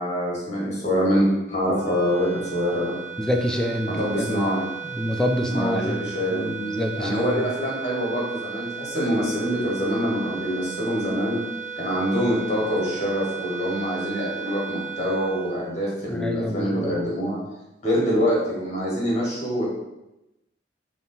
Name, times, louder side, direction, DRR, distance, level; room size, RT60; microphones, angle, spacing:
voice 1, 0.0-2.9 3.8-4.6 5.5-6.5 7.0-11.4 11.8-17.4 17.8-19.6, equal, 40° left, -5 dB, 1.5 m, -25 dB
sound 1, 1.7-16.3, right 6 dB, 45° right, 1.2 m, -36 dB
voice 2, 3.2-4.4 4.9-7.4 16.1-16.9, equal, 5° left, 2 dB, 0.3 m, -27 dB
3.6 x 2.9 x 4.0 m, 0.94 s
head